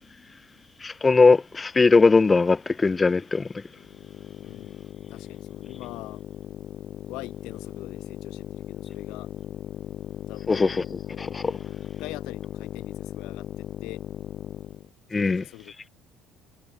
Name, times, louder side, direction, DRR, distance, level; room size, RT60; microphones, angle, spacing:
voice 1, 0.8-3.5 10.5-10.8 11.2-11.5 15.1-15.4, left 4 dB, 20° left, 0.4 m, -19 dB
sound 1, 3.7-14.9, left 11 dB, 50° left, 2.3 m, -38 dB
voice 2, 4.4-6.2 7.1-9.3 10.3-10.6 11.6-14.0 15.1-15.9, left 22 dB, 80° left, 2.3 m, -43 dB
cardioid pair, 115°, 0 cm